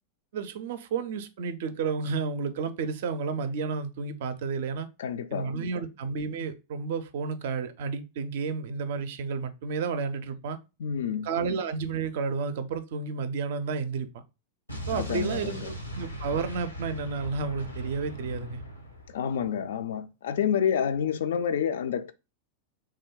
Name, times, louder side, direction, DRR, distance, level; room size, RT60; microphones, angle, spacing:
voice 1, 0.3-4.9 5.3-10.6 11.2-14.2 14.9-18.6, right 5 dB, 55° right, 0.4 m, -31 dB
voice 2, 5.0-5.5 10.8-11.3 14.9-15.7 19.1-22.1, left 8 dB, 60° left, 0.3 m, -29 dB
Explosion, 14.7-19.5, equal, 85° left, 0.8 m, -39 dB
3.2 x 2.2 x 3.6 m
figure-of-eight pair, 90°, 0 cm